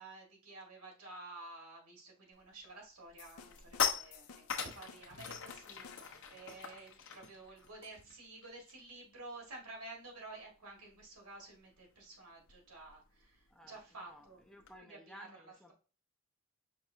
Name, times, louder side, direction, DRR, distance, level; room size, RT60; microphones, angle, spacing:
voice 1, 0.0-13.0 13.7-14.4 14.8-15.3, right 2 dB, 85° right, 0 dB, 1.8 m, -51 dB
sound 1, 2.4-2.7 3.0-9.0 9.2-9.5 9.8-14.8, left 7 dB, 55° left, 0.9 m, -42 dB
sound 2, 3.2-6.4, left 5 dB, 80° left, 0.5 m, -56 dB
voice 2, 13.5-15.7, equal, 5° left, 2 dB, 0.4 m, -56 dB
5.6 x 3.2 x 2.8 m, 0.35 s
head